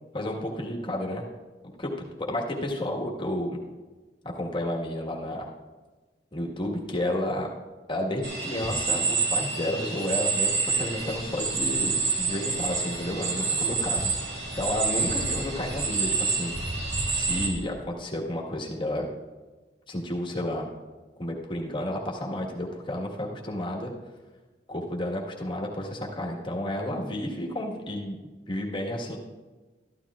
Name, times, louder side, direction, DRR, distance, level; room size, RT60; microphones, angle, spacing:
voice 1, 0.1-1.3 1.8-1.9 2.2-3.6 4.2-5.5 6.3-7.5 7.9-14.1 14.6-16.5 17.1-19.1 19.9-20.7 21.2-23.9 24.7-28.2 28.5-29.2, left 1 dB, 30° left, -1 dB, 1.4 m, -31 dB
sound 1, 8.2-17.5, right 4 dB, 70° right, 2.0 m, -28 dB
13.5 x 12.0 x 2.4 m, 1.3 s
head